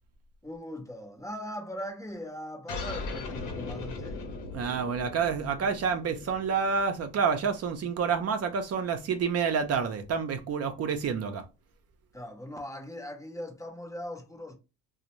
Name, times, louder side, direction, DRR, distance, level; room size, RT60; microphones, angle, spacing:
voice 1, 0.4-4.2 12.1-14.6, equal, 10° left, 0.6 m, -40 dB
sound 1, 2.7-7.7, left 3 dB, 90° left, 0.7 m, -39 dB
voice 2, 4.5-11.4, right 6 dB, 55° right, 0.5 m, -28 dB
2.5 x 2.0 x 2.9 m
cardioid pair, 90°, 30 cm